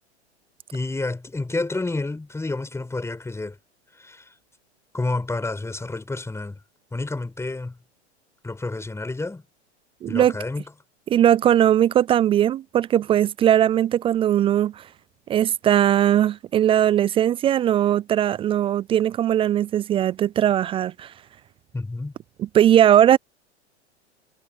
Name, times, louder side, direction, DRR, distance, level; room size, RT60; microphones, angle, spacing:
voice 1, 0.7-3.6 4.0-4.3 4.9-6.6 6.9-7.8 8.4-9.4 10.1-10.6 21.7-22.1, left 2 dB, 10° left, 7.3 m, -29 dB
voice 2, 10.0-10.3 11.1-14.8 15.3-21.1 22.4-23.2, right 11 dB, 15° right, 0.4 m, -19 dB
hypercardioid pair, 105°, 34 cm